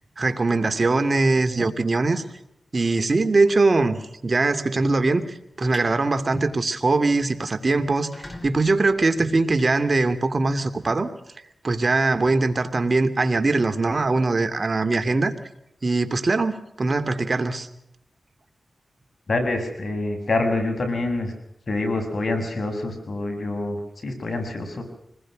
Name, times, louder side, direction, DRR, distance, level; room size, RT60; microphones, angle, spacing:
voice 1, 0.2-2.2 2.7-11.1 11.6-15.3 15.8-17.7, right 3 dB, 50° right, 9 dB, 2.6 m, -22 dB
sound 1, 5.6-5.9 6.4-6.6 7.0-7.1 7.3-7.4 7.9-10.5, left 1 dB, 25° left, 5.0 m, -44 dB
voice 2, 19.3-21.3 21.7-24.8, left 2 dB, 60° left, 6 dB, 6.9 m, -26 dB
26.0 x 20.5 x 6.2 m, 0.76 s
cardioid pair, 50°, 0 cm